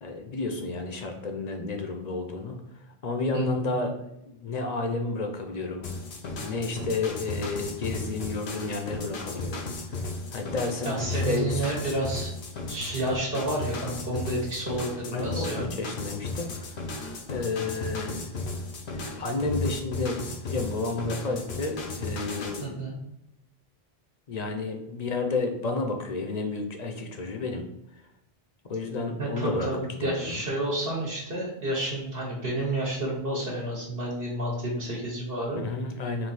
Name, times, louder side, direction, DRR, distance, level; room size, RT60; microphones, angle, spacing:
voice 1, 0.0-2.6 3.0-5.8 6.4-9.7 10.3-11.6 15.1-16.8 17.3-18.4 18.9-22.8 24.3-27.6 28.7-29.7 30.0-30.4 35.5-36.3, left 3 dB, 50° left, 4 dB, 0.6 m, -31 dB
voice 2, 3.3-3.7 10.8-12.3 12.7-15.7 22.6-22.9 29.2-35.6, right 1 dB, 65° right, -4 dB, 1.3 m, -30 dB
sound 1, 5.8-22.7, left 2 dB, 90° left, 0.9 m, -35 dB
3.8 x 2.7 x 4.0 m, 0.85 s
omnidirectional pair, 1.0 m